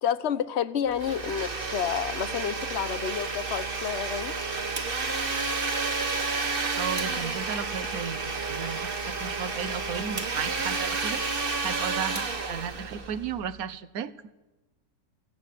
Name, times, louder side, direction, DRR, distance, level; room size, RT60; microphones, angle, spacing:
voice 1, 0.0-4.3, left 8 dB, 50° left, 14 dB, 1.1 m, -30 dB
Domestic sounds home sounds, 0.9-13.5, right 4 dB, 35° right, 1.6 m, -31 dB
voice 2, 6.8-11.2 11.6-14.1, right 7 dB, 70° right, 15 dB, 1.4 m, -34 dB
23.0 x 16.0 x 9.4 m, 1.1 s
omnidirectional pair, 1.6 m